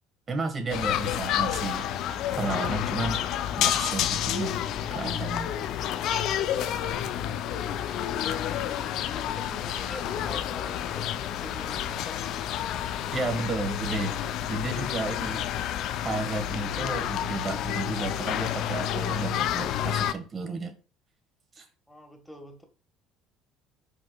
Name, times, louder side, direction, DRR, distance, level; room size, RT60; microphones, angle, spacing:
voice 1, 0.3-1.9 2.4-3.2 3.6-4.6 4.9-5.5 13.1-14.2 14.5-15.5 16.0-20.7 21.5-21.6, right 3 dB, 35° right, 6 dB, 1.5 m, -32 dB
sound 1, 0.7-20.1, left 10 dB, 65° left, 0.5 m, -29 dB
voice 2, 9.1-12.3 21.9-22.6, equal, 5° left, 4 dB, 1.6 m, -46 dB
5.3 x 4.4 x 2.3 m, 0.34 s
hypercardioid pair, 70°, 0 cm